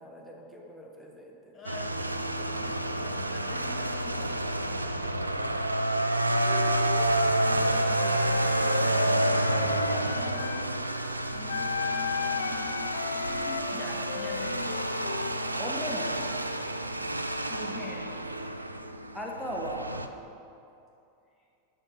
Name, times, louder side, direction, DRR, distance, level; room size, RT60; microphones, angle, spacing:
voice 1, 0.0-1.6 13.3-13.8 15.6-16.3 19.1-20.1, equal, ahead, -1 dB, 1.2 m, -39 dB
voice 2, 1.5-5.6 7.4-10.7 11.3-12.8 13.7-14.7 17.5-18.1, left 4 dB, 20° left, -1 dB, 1.0 m, -46 dB
sound 1, 1.7-20.1, right 1 dB, 85° right, 0.4 m, -29 dB
Wind instrument woodwind instrument, 6.5-10.7 11.5-15.4, left 6 dB, 70° left, 0.3 m, -34 dB
7.1 x 6.8 x 5.4 m, 2.7 s
figure-of-eight pair, 90°, 0 cm